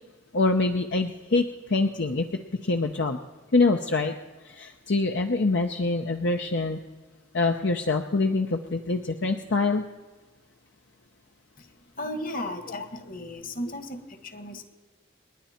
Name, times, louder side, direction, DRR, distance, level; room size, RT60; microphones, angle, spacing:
voice 1, 0.3-2.3 2.6-3.2 3.5-4.1 4.4-6.8 7.3-9.8, left 3 dB, 70° left, 4 dB, 0.8 m, -25 dB
voice 2, 12.0-14.6, left 1 dB, 50° left, 7 dB, 1.5 m, -35 dB
28.5 x 10.5 x 4.3 m, 1.3 s
head